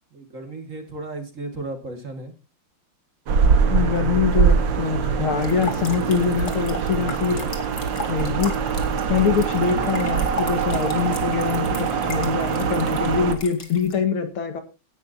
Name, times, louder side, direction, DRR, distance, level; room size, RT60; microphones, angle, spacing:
voice 1, 0.1-2.3, right 2 dB, 35° right, 5 dB, 2.3 m, -34 dB
sound 1, 3.3-13.3, right 6 dB, 60° right, 1.9 m, -23 dB
voice 2, 3.7-7.4 8.1-8.5 9.1-14.6, left 6 dB, 80° left, 7 dB, 2.6 m, -24 dB
sound 2, 5.4-13.9, left 3 dB, 45° left, 2.5 m, -37 dB
17.5 x 10.5 x 2.7 m, 0.30 s
omnidirectional pair, 2.3 m